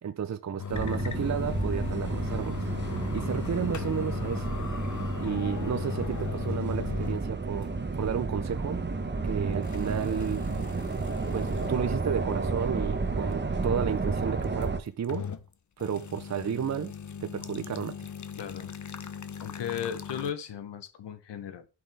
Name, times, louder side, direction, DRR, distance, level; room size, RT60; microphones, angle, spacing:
voice 1, 0.0-2.6 3.1-4.5 5.2-7.7 8.0-8.8 9.2-10.5 11.3-15.3 15.8-16.9 17.2-18.0, right 7 dB, 40° right, 0.6 m, -32 dB
sound 1, 0.6-7.3 7.6-7.7 8.4-8.5 9.6-11.8 12.2-12.3 14.4-15.5 15.8-20.3, left 7 dB, 45° left, 0.7 m, -39 dB
sound 2, 0.7-14.8, right 3 dB, 25° right, 0.9 m, -31 dB
voice 2, 18.4-18.7 19.4-21.7, left 9 dB, 85° left, 0.9 m, -36 dB
9.5 x 5.4 x 3.4 m
cardioid pair, 50°, 41 cm